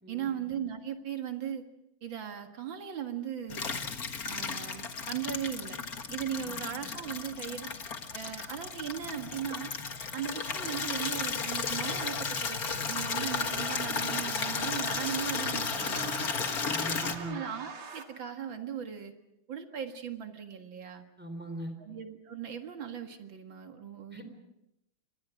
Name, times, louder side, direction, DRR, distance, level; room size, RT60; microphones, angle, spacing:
voice 1, 0.1-1.6 2.0-3.7 4.2-5.8 6.1-7.7 8.1-9.7 10.1-16.5 17.2-19.1 19.5-21.1 21.8-24.2, right 9 dB, 65° right, 5 dB, 2.5 m, -38 dB
Water tap faucet / Liquid, 3.5-17.2, left 5 dB, 45° left, 1.9 m, -34 dB
sound 1, 9.6-18.0, right 5 dB, 80° right, 3.1 m, -47 dB
voice 2, 16.7-17.4 21.2-21.7 24.1-24.2, right 1 dB, 5° right, 6 dB, 4.0 m, -40 dB
29.5 x 25.0 x 5.1 m, 0.85 s
omnidirectional pair, 2.3 m